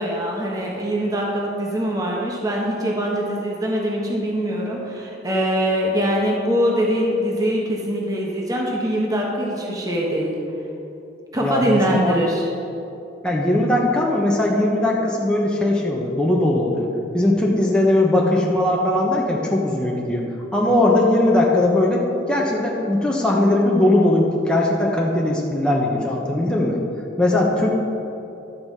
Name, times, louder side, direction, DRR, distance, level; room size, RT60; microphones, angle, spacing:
voice 1, 0.0-10.4 11.3-12.5, equal, 20° right, -2 dB, 1.3 m, -23 dB
voice 2, 11.4-12.1 13.2-16.9 17.1-20.2 20.5-26.8 27.2-27.7, left 1 dB, 5° left, -3 dB, 1.1 m, -19 dB
11.5 x 4.9 x 7.4 m, 2.8 s
head